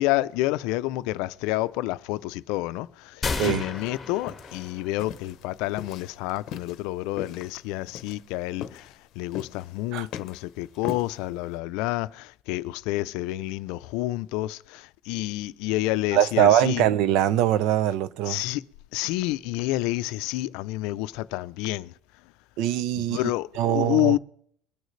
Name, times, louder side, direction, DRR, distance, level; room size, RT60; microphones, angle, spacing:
voice 1, 0.0-16.8 18.3-18.6 18.9-21.9 23.0-24.2, left 17 dB, 70° left, 0.4 m, -29 dB
sound 1, 3.2-5.1, left 4 dB, 10° left, 1.8 m, -33 dB
sound 2, 3.8-11.6, left 8 dB, 45° left, 0.9 m, -42 dB
voice 2, 16.1-18.4 22.6-23.2 23.6-24.1, right 11 dB, 60° right, 0.5 m, -22 dB
22.5 x 9.2 x 3.2 m
cardioid pair, 155°, 0 cm